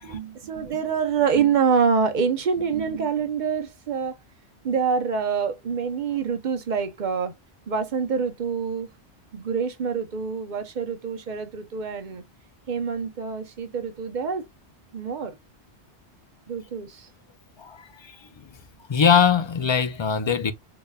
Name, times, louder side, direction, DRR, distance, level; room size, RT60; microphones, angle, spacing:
voice 1, 0.0-4.2 4.6-7.3 7.7-8.9 9.3-12.2 12.7-14.4 14.9-15.3 16.5-17.1, right 6 dB, 50° right, 0.7 m, -26 dB
voice 2, 17.6-18.2 18.9-20.5, left 7 dB, 50° left, 0.3 m, -21 dB
3.9 x 3.3 x 2.2 m
omnidirectional pair, 1.1 m